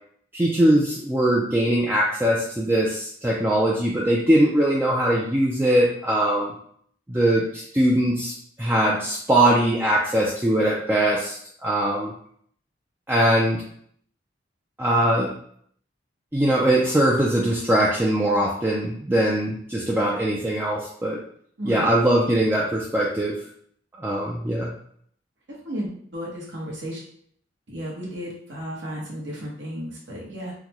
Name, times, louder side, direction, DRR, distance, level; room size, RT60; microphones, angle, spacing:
voice 1, 0.3-6.5 7.1-8.3 8.6-12.1 13.1-13.6 14.8-15.3 16.3-21.2 21.6-23.3 24.0-24.7, right 1 dB, 10° right, -4 dB, 0.4 m, -21 dB
voice 2, 21.6-21.9 25.6-27.0 27.7-30.5, equal, 75° right, -3 dB, 1.1 m, -33 dB
3.8 x 2.2 x 3.0 m, 0.63 s
head